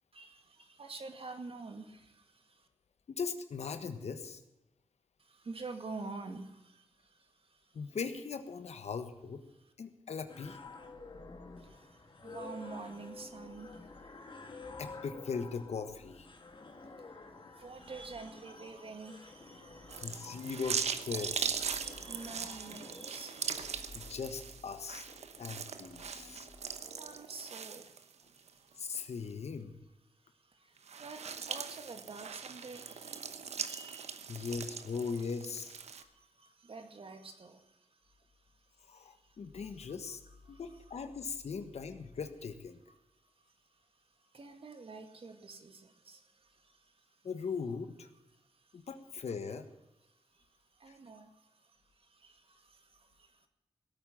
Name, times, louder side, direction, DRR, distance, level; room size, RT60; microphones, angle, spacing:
voice 1, 0.1-2.7 5.2-7.8 11.6-14.7 17.5-20.5 21.3-24.1 25.3-25.4 26.0-29.1 30.2-34.5 35.9-38.5 38.9-39.6 40.5-41.0 43.4-43.9 44.2-47.2 48.3-48.9 50.1-53.5, right 3 dB, 55° right, 6 dB, 2.2 m, -49 dB
voice 2, 3.1-4.4 7.7-9.4 9.8-10.6 14.8-16.3 20.0-21.5 23.9-25.1 25.4-26.5 28.8-29.8 34.3-35.8 38.9-40.2 40.5-42.8 47.2-48.1 48.7-49.6 50.9-51.0, left 5 dB, 75° left, 9 dB, 1.4 m, -39 dB
sound 1, 10.3-27.2, left 3 dB, 45° left, 2.0 m, -51 dB
sound 2, 19.9-28.5 28.9-29.0 30.8-36.0, right 6 dB, 80° right, 1.0 m, -40 dB
17.0 x 8.7 x 7.6 m, 0.94 s
cardioid pair, 60°, 11 cm